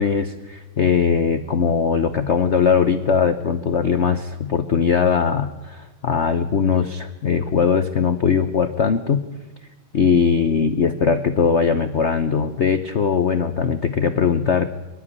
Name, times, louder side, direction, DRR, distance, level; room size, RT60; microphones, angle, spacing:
voice 1, 0.0-9.2 9.9-14.7, left 6 dB, 50° left, 9 dB, 0.9 m, -20 dB
24.0 x 12.0 x 9.5 m, 1.2 s
omnidirectional pair, 2.2 m